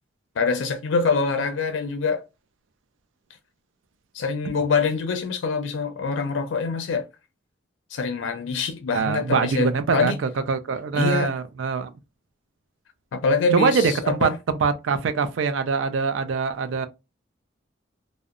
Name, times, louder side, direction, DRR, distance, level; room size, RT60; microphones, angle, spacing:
voice 1, 0.4-2.2 4.1-7.1 7.9-10.2 10.9-11.3 13.1-14.4, left 4 dB, 80° left, 0.4 m, -25 dB
voice 2, 8.9-11.9 13.5-14.3 14.6-16.9, right 5 dB, 80° right, 0.4 m, -23 dB
2.7 x 2.0 x 2.4 m
head